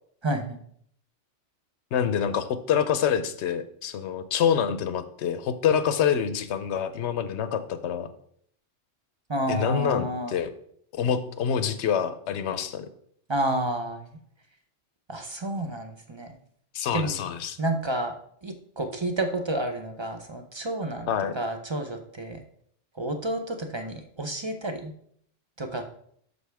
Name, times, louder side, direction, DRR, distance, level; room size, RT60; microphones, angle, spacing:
voice 1, 0.2-0.6 9.3-10.3 13.3-14.0 15.1-16.3 16.9-17.2 17.6-18.1 18.4-21.1 21.3-22.4 23.0-24.9 25.6-25.8, right 1 dB, 30° right, 6 dB, 0.7 m, -30 dB
voice 2, 1.9-8.1 9.5-10.5 10.9-12.9 16.7-17.6 21.1-21.3, left 8 dB, 70° left, 11 dB, 0.9 m, -26 dB
9.5 x 6.6 x 3.4 m, 0.65 s
omnidirectional pair, 1.2 m